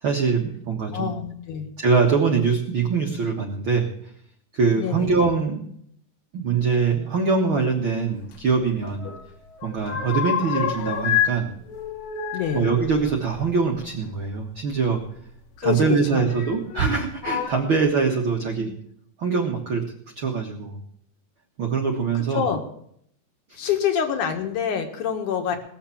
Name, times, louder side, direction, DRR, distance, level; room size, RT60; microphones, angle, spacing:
voice 1, 0.0-1.2 1.8-3.9 4.5-5.6 6.3-9.1 9.6-11.5 12.5-15.0 15.6-18.7 19.2-19.8 20.1-20.8 21.6-22.4 23.5-23.7, right 5 dB, 85° right, 1 dB, 1.1 m, -23 dB
voice 2, 0.9-1.7 4.8-5.1 10.6-10.7 12.3-12.7 15.6-16.3 18.3-18.8 22.1-22.6 23.6-25.5, left 8 dB, 55° left, 5 dB, 2.7 m, -26 dB
sound 1, 8.3-9.2 9.5-11.4 11.7-14.2 15.2-15.3 16.3-16.9 17.2-17.5, left 9 dB, 75° left, 3.8 m, -28 dB
20.0 x 7.3 x 7.2 m, 0.67 s
omnidirectional pair, 5.0 m